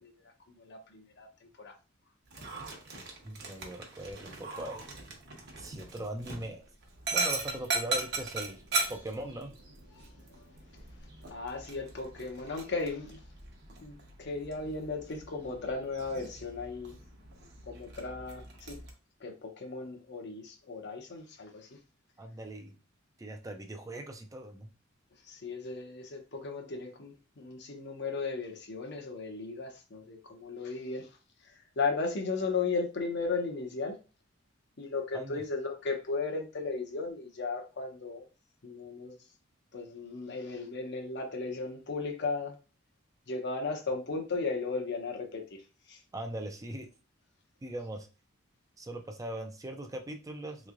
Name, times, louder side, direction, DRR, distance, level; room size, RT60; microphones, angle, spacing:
voice 1, 0.5-1.8 2.6-2.8 10.0-10.1 11.3-13.2 13.8-17.0 17.7-18.8 19.2-21.8 25.2-31.1 31.4-34.0 34.8-38.2 38.6-39.2 39.7-42.6 43.3-45.6 45.9-46.0, left 4 dB, 60° left, 0.8 m, -36 dB
Dog, 2.3-18.9, right 3 dB, 55° right, 0.9 m, -39 dB
voice 2, 3.2-4.8 5.6-6.6 7.1-8.6 8.9-9.6 22.2-22.8 23.2-24.7 35.1-35.4 46.1-46.9 47.6-48.1 48.8-50.7, right 1 dB, 15° right, 0.4 m, -40 dB
3.5 x 3.1 x 2.4 m
head